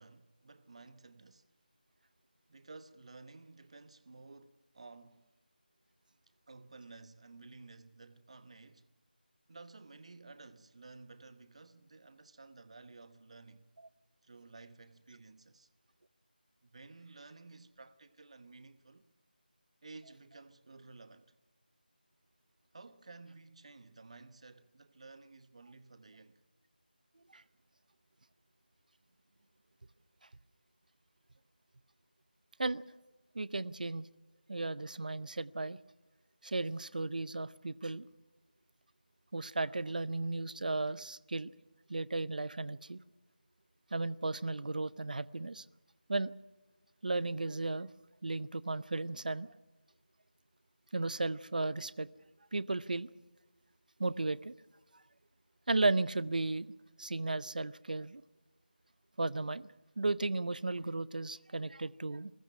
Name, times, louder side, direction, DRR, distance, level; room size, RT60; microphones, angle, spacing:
voice 1, 0.0-1.5 2.5-5.3 6.5-8.9 9.5-13.7 14.2-15.7 16.6-19.1 19.8-21.3 22.7-26.4, right 3 dB, 40° right, 1.2 m, -54 dB
voice 2, 33.3-34.1 34.5-35.8 36.4-38.1 39.3-41.5 41.9-43.0 43.9-45.6 46.1-46.3 47.0-47.9 48.2-49.5 50.9-52.1 52.5-53.1 54.0-54.5 55.7-56.7 57.0-58.2 59.2-59.7 60.0-62.3, right 2 dB, 55° right, 0.7 m, -34 dB
21.5 x 14.0 x 9.8 m
figure-of-eight pair, 165°, 5 cm